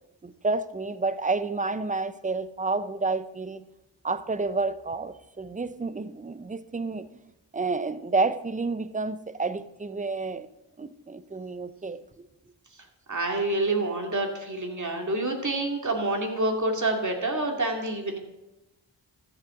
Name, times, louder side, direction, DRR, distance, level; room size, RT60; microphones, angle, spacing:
voice 1, 0.2-3.6 4.0-7.1 7.5-10.5 10.8-12.3, right 3 dB, 15° right, 0.6 m, -30 dB
voice 2, 13.1-18.2, right 2 dB, 40° right, 2.4 m, -27 dB
13.5 x 7.7 x 3.8 m
cardioid pair, 50°, 45 cm